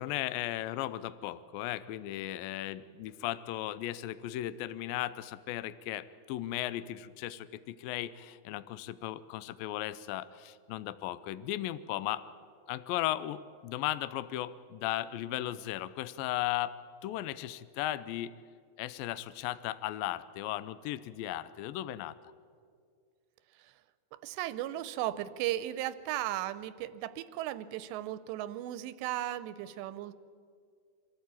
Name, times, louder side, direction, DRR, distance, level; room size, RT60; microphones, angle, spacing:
voice 1, 0.0-12.2 12.7-16.7 17.0-18.3 18.8-22.1, left 14 dB, 85° left, 15 dB, 2.0 m, -36 dB
voice 2, 24.2-30.1, right 13 dB, 90° right, 15 dB, 2.9 m, -36 dB
24.5 x 14.0 x 8.7 m, 2.2 s
omnidirectional pair, 4.9 m